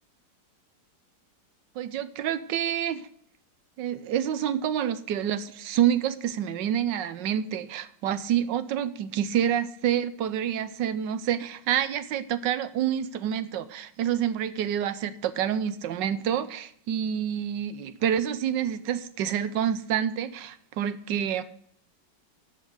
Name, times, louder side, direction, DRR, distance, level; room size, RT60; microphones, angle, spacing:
voice 1, 1.8-3.1 3.8-21.4, right 9 dB, 80° right, 13 dB, 1.4 m, -28 dB
11.0 x 7.6 x 7.9 m, 0.66 s
omnidirectional pair, 1.9 m